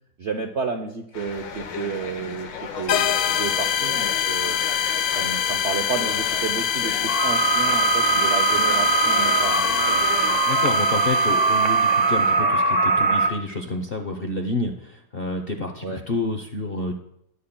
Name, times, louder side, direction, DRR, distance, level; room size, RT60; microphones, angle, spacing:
voice 1, 0.2-2.5 2.8-4.6 5.1-10.0 15.8-16.0, right 5 dB, 65° right, 4 dB, 0.7 m, -31 dB
sound 1, 1.1-10.4, left 5 dB, 90° left, 1.8 m, -35 dB
sound 2, 2.9-12.3, left 9 dB, 70° left, 1.1 m, -25 dB
sound 3, 7.1-13.3, right 4 dB, 50° right, 1.3 m, -21 dB
voice 2, 10.5-17.0, left 2 dB, 55° left, 4 dB, 0.6 m, -29 dB
18.5 x 8.6 x 2.2 m, 0.77 s
omnidirectional pair, 2.0 m